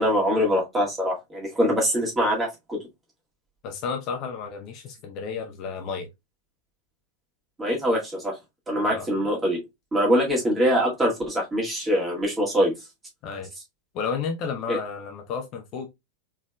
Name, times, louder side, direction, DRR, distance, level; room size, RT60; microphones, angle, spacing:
voice 1, 0.0-2.8 7.6-8.4 8.7-9.6 9.9-12.7 14.7-14.8, equal, 15° right, 1.9 m, -23 dB
voice 2, 3.6-6.1 8.8-9.1 13.2-13.5 13.9-15.9, left 6 dB, 40° left, 0.7 m, -32 dB
4.2 x 3.5 x 2.2 m
figure-of-eight pair, 90°, 0 cm